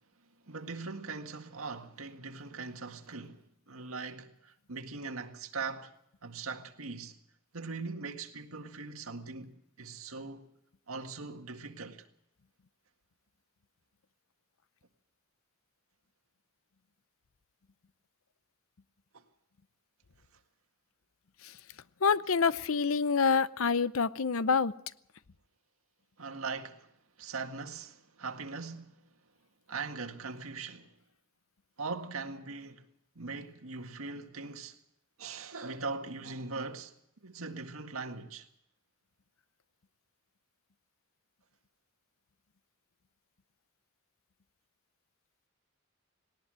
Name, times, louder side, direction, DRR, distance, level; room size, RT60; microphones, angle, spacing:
voice 1, 0.5-5.9 6.2-7.2 7.5-10.5 10.9-12.1 19.1-19.2 26.2-26.9 27.2-29.1 29.7-31.0 31.8-32.9 33.2-34.8 35.2-36.9 37.2-38.5, right 4 dB, 85° right, 1.9 m, -41 dB
voice 2, 22.0-24.7, left 5 dB, 75° left, 0.7 m, -27 dB
19.0 x 18.5 x 7.6 m
head